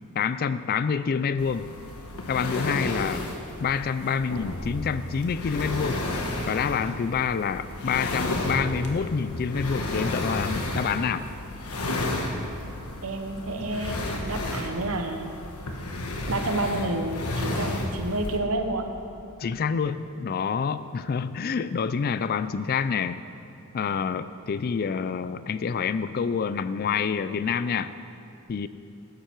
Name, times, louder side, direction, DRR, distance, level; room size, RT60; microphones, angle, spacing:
voice 1, 0.2-1.8 2.3-3.2 3.6-6.1 6.5-11.3 19.4-23.2 23.7-27.9 28.5-28.7, left 6 dB, 45° left, 13 dB, 0.3 m, -27 dB
sound 1, 1.4-18.4, left 1 dB, 80° left, 1.3 m, -32 dB
voice 2, 13.0-15.3 16.3-18.8, right 2 dB, 65° right, 5 dB, 1.0 m, -29 dB
12.5 x 10.0 x 4.6 m, 2.6 s
head